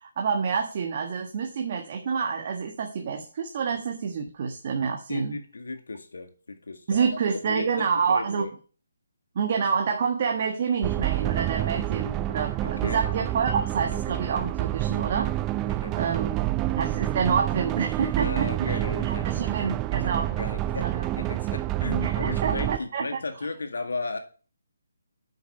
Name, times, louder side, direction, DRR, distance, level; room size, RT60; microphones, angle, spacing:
voice 1, 0.0-5.4 6.9-8.4 9.3-15.3 15.9-16.4 16.7-20.3 20.8-21.1 22.0-23.1, right 6 dB, 45° right, 2 dB, 1.4 m, -28 dB
voice 2, 5.1-7.1 7.4-8.5 12.6-13.1 15.7-16.5 18.2-19.5 20.0-24.2, left 3 dB, 75° left, 7 dB, 1.9 m, -35 dB
sound 1, 10.8-22.8, right 15 dB, 20° right, 0.4 m, -28 dB
8.7 x 7.1 x 5.6 m, 0.39 s
figure-of-eight pair, 150°, 0 cm